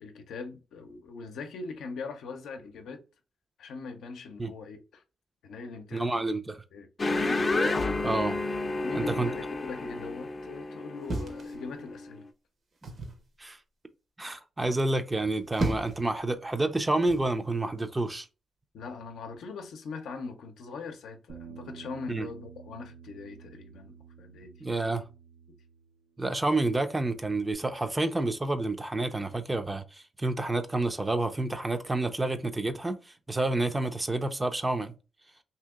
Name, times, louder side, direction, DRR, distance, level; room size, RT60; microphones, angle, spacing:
voice 1, 0.0-3.0 3.6-5.0 5.4-6.2 6.7-6.9 8.8-12.2 18.7-24.6 24.9-25.0, left 4 dB, 85° left, 0.6 m, -41 dB
voice 2, 5.9-6.5 8.0-8.4 9.0-9.3 13.4-13.6 14.2-18.3 22.1-22.3 24.6-25.0 26.2-34.9, right 2 dB, 20° right, 0.5 m, -29 dB
sound 1, 7.0-12.0, left 2 dB, 35° left, 0.5 m, -31 dB
sound 2, 11.1-12.1 12.8-13.2 15.2-16.1 17.1-17.3, right 2 dB, 55° right, 1.0 m, -34 dB
Bass guitar, 21.3-26.1 26.4-27.5, right 7 dB, 80° right, 0.7 m, -50 dB
2.8 x 2.8 x 3.5 m
cardioid pair, 75°, 0 cm